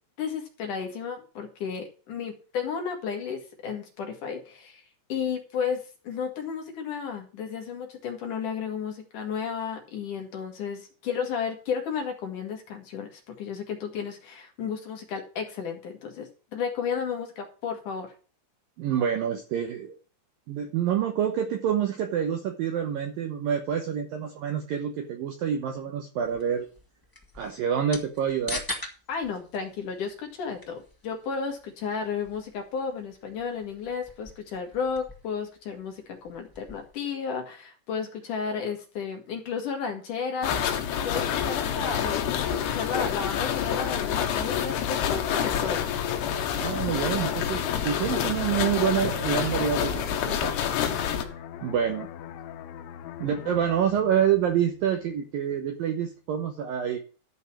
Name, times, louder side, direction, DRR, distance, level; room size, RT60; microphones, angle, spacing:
voice 1, 0.2-4.8 5.1-18.1 29.1-45.8, left 6 dB, 55° left, 3 dB, 2.7 m, -33 dB
voice 2, 18.8-19.9 20.5-26.7 27.4-28.6 46.6-50.8 51.3-52.1 53.2-57.0, right 8 dB, 70° right, 5 dB, 2.3 m, -27 dB
sound 1, 26.2-36.9, left 2 dB, 35° left, 0.3 m, -43 dB
sound 2, 40.4-51.2, left 9 dB, 70° left, 3.1 m, -27 dB
sound 3, 50.4-55.7 56.1-56.3, left 10 dB, 85° left, 3.2 m, -43 dB
13.0 x 5.4 x 6.0 m, 0.37 s
omnidirectional pair, 5.2 m